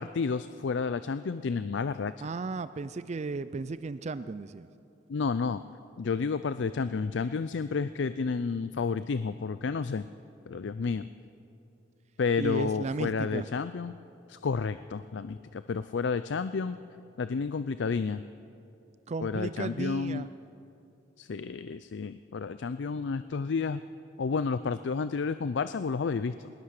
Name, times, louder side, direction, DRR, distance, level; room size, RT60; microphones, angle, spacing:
voice 1, 0.0-2.1 5.1-5.6 6.0-10.1 10.5-11.1 12.2-13.9 14.3-16.8 17.2-18.2 19.2-20.3 21.2-23.8 24.2-26.5, left 5 dB, 65° left, 13 dB, 0.4 m, -31 dB
voice 2, 2.2-4.7 12.4-13.5 19.1-20.3, right 3 dB, 35° right, 14 dB, 0.4 m, -34 dB
20.0 x 20.0 x 6.6 m, 2.7 s
head